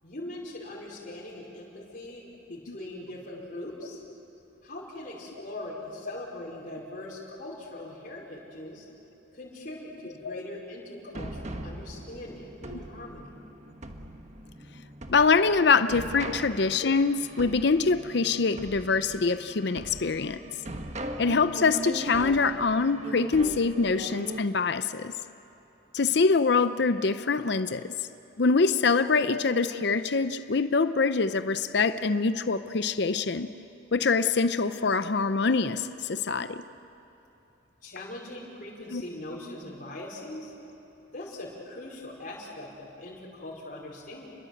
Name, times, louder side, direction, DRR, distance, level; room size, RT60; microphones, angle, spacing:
voice 1, 0.0-4.0 4.6-8.9 9.3-13.3 37.8-40.5 41.1-44.3, left 1 dB, 45° left, -4 dB, 5.0 m, -41 dB
sound 1, 11.1-24.4, right 1 dB, 35° right, 1.3 m, -40 dB
voice 2, 15.1-20.4 21.2-25.1 25.9-27.9 28.4-33.5 33.9-36.6 38.9-39.0, left 4 dB, 60° left, 12 dB, 0.6 m, -24 dB
29.0 x 21.5 x 7.9 m, 3.0 s
head